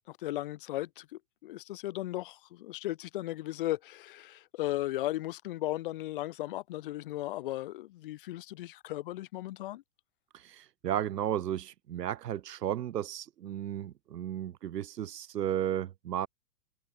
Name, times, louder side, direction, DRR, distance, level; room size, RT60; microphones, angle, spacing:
voice 1, 0.0-9.8, left 16 dB, 30° left, 1.1 m, -36 dB
voice 2, 10.3-16.3, right 11 dB, 75° right, 3.4 m, -34 dB
supercardioid pair, 180°, 49 cm